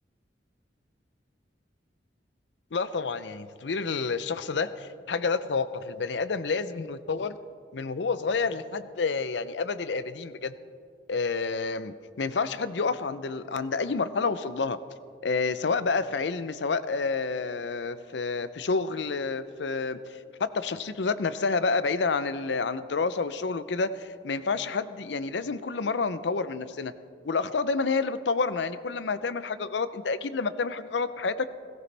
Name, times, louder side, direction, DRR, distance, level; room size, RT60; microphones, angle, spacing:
voice 1, 2.7-7.4 7.7-10.5 11.1-14.8 15.2-20.0 20.4-26.9 27.2-31.5, left 4 dB, 85° left, 13 dB, 0.6 m, -29 dB
17.5 x 17.0 x 3.4 m, 2.2 s
head